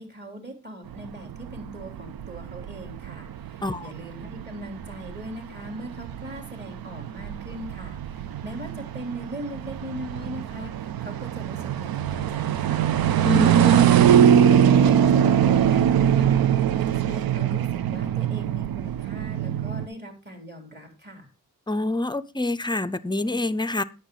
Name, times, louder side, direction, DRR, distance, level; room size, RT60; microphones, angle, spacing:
voice 1, 0.0-13.9 14.3-21.3, equal, 30° right, 3.3 m, -40 dB
sound 1, 0.9-19.9, right 9 dB, 90° right, 0.5 m, -22 dB
voice 2, 3.6-3.9 13.2-14.0 21.7-23.8, left 2 dB, 15° left, 0.5 m, -27 dB
10.0 x 7.3 x 3.9 m
cardioid pair, 75°, 35 cm